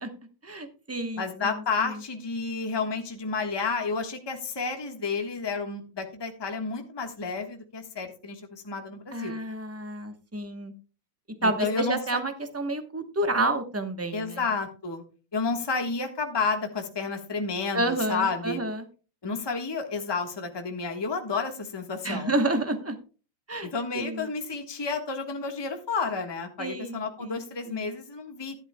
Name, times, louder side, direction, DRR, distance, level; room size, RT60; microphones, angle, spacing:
voice 1, 0.4-1.5 1.8-2.0 9.1-10.7 11.4-14.4 17.7-18.8 22.0-23.0 23.5-23.7 23.9-24.3 26.6-27.9, right 2 dB, 15° right, 7 dB, 0.6 m, -30 dB
voice 2, 1.2-9.4 11.4-12.2 14.1-15.0 15.3-18.6 19.2-22.3 23.7-28.6, left 4 dB, 15° left, 5 dB, 1.2 m, -31 dB
13.0 x 11.5 x 2.2 m, 0.34 s
omnidirectional pair, 2.0 m